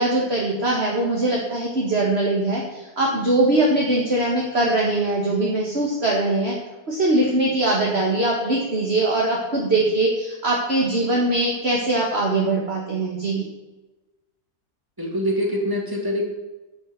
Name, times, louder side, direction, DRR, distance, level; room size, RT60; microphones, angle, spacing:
voice 1, 0.0-6.5 6.9-13.5, right 2 dB, 40° right, -3 dB, 2.0 m, -21 dB
voice 2, 15.0-16.3, equal, 15° right, 0 dB, 2.5 m, -24 dB
12.0 x 6.5 x 8.1 m, 1.1 s
omnidirectional pair, 1.7 m